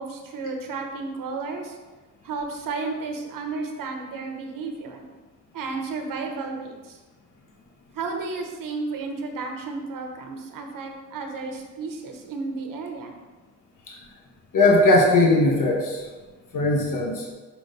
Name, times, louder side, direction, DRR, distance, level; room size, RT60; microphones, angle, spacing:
voice 1, 0.0-1.8 2.2-5.0 5.5-7.0 7.9-13.1, right 4 dB, 80° right, 3 dB, 1.1 m, -32 dB
voice 2, 14.5-16.0 16.5-17.2, left 2 dB, 65° left, -2 dB, 1.4 m, -19 dB
5.8 x 4.1 x 5.2 m, 1.3 s
cardioid pair, 80°, 33 cm